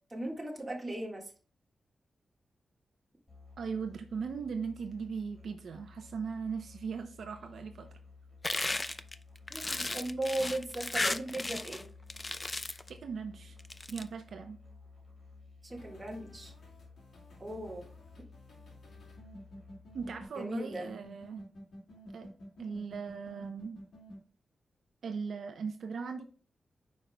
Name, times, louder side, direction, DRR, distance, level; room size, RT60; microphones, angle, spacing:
voice 1, 0.1-1.3 9.5-11.9 15.6-16.5 17.4-17.8 20.4-20.9, right 1 dB, 15° right, -1 dB, 1.7 m, -37 dB
Musical instrument, 3.3-20.2, left 4 dB, 5° left, 2.7 m, -55 dB
voice 2, 3.6-8.0 12.9-13.6 13.9-14.6 19.9-21.4 22.1-22.3 22.6-23.8 25.0-26.2, right 5 dB, 75° right, 6 dB, 0.6 m, -39 dB
sound 1, 8.4-11.8 12.1-12.9 13.6-14.0, left 2 dB, 20° left, 0.4 m, -34 dB
sound 2, 15.7-24.2, equal, 75° left, 2.2 m, -51 dB
9.0 x 5.3 x 2.3 m, 0.38 s
wide cardioid pair, 140°, 0 cm